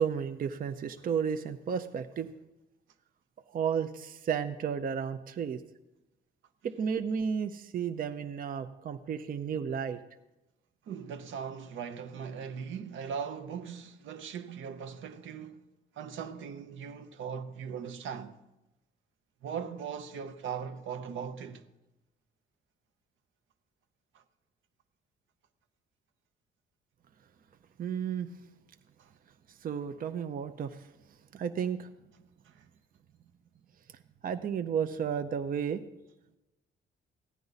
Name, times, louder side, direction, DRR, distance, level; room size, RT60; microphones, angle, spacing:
voice 1, 0.0-2.3 3.5-5.6 6.6-10.0 27.8-28.3 29.5-31.9 33.9-35.8, right 7 dB, 45° right, 0.6 m, -33 dB
voice 2, 10.9-15.6 15.9-18.4 19.4-21.7 24.1-24.2 29.0-29.1 32.4-32.6, right 7 dB, 75° right, 0.8 m, -39 dB
15.5 x 9.3 x 4.0 m
cardioid pair, 90°, 20 cm